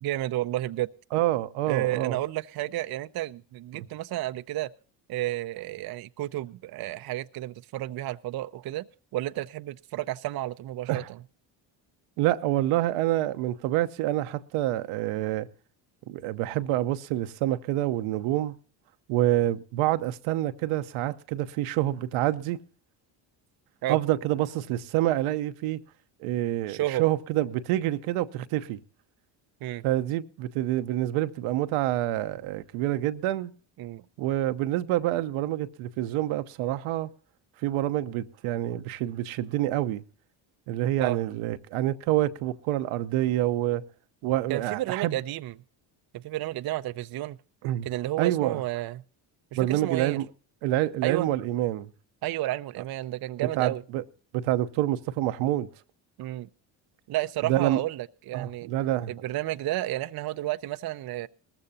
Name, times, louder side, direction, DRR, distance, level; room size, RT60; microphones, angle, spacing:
voice 1, 0.0-0.9 1.7-4.7 5.1-8.9 9.1-11.2 23.8-24.0 26.7-27.0 29.6-29.8 33.8-34.0 41.0-41.2 44.5-45.5 46.1-47.4 47.8-49.0 49.5-50.2 51.0-51.3 52.2-53.8 56.2-56.5 57.1-58.7 59.1-61.3, right 15 dB, 50° right, 0.6 m, -31 dB
voice 2, 1.1-2.2 3.7-3.9 10.9-11.1 12.2-15.5 16.1-18.5 19.1-22.6 23.9-25.8 26.2-28.8 29.8-33.5 34.2-37.1 37.6-40.0 40.7-43.8 44.2-45.2 47.6-47.9 48.2-48.6 49.6-50.3 50.6-51.9 53.6-54.0 54.3-55.7 57.4-57.8 58.3-59.2, right 14 dB, 75° right, 0.9 m, -27 dB
19.5 x 14.5 x 2.7 m
supercardioid pair, 70°, 49 cm